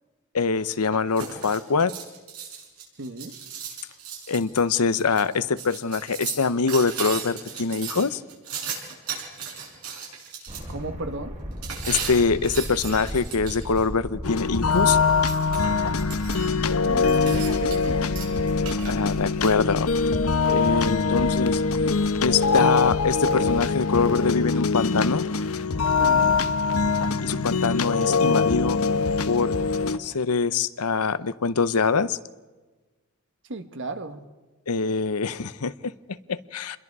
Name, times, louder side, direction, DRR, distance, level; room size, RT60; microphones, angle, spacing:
voice 1, 0.3-2.0 4.3-8.2 11.9-15.0 18.8-19.9 20.4-21.6 22.2-25.3 27.2-28.8 29.3-29.6 30.0-32.2 34.7-36.8, left 4 dB, 90° left, 0.8 m, -24 dB
sound 1, 0.7-10.6 11.6-13.9 14.7-16.7 17.0-17.9 18.2-19.5, right 7 dB, 75° right, 6.7 m, -36 dB
voice 2, 3.0-3.3 10.7-11.4 16.8-18.1 26.0-26.3 33.5-34.2, right 2 dB, 60° right, 1.6 m, -35 dB
sound 2, 10.5-23.5, equal, 30° right, 3.1 m, -37 dB
sound 3, 14.2-30.0, left 4 dB, 70° left, 0.9 m, -23 dB
28.5 x 22.0 x 4.8 m
head